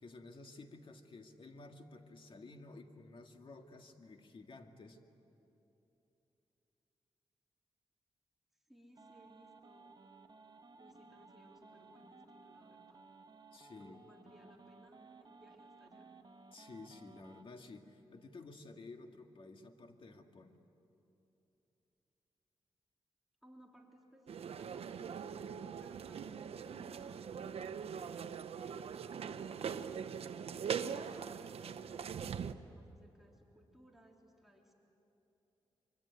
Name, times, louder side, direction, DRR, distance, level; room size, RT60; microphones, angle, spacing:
voice 1, 0.0-5.0 13.5-14.1 16.5-20.7, left 3 dB, 60° left, 5 dB, 2.1 m, -53 dB
voice 2, 8.5-10.1 10.7-13.0 13.8-16.1 23.4-29.9 30.5-34.7, equal, ahead, -2 dB, 3.5 m, -63 dB
sound 1, 8.9-17.4, right 4 dB, 45° right, 1.6 m, -59 dB
sound 2, 24.3-32.5, right 7 dB, 85° right, 0.8 m, -42 dB
25.0 x 25.0 x 9.5 m, 3.0 s
wide cardioid pair, 95°, 10 cm